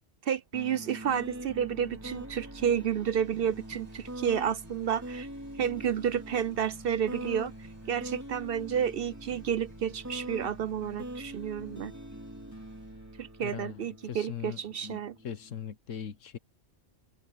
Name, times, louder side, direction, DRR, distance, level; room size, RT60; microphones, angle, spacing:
voice 1, 0.2-5.3 5.6-7.5 7.9-11.9 13.2-15.2, right 8 dB, 60° right, 0.7 m, -31 dB
sound 1, 0.5-15.6, right 1 dB, 15° right, 3.0 m, -44 dB
sound 2, 0.9-14.0, right 2 dB, 30° right, 1.9 m, -54 dB
voice 2, 13.4-16.4, left 8 dB, 85° left, 1.4 m, -40 dB
open air
omnidirectional pair, 1.3 m